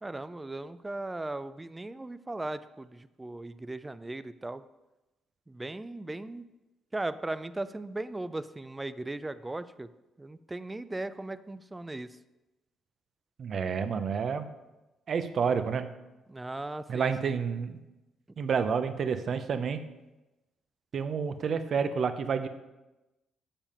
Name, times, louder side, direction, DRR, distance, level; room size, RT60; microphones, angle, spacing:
voice 1, 0.0-4.7 5.5-6.4 6.9-9.9 10.2-12.2 16.3-17.4, right 2 dB, 15° right, 13 dB, 0.4 m, -38 dB
voice 2, 13.4-14.5 15.1-15.9 16.9-17.8 18.4-19.8 20.9-22.5, right 6 dB, 55° right, 9 dB, 0.7 m, -29 dB
7.2 x 7.1 x 5.5 m, 1.0 s
cardioid pair, 90°, 0 cm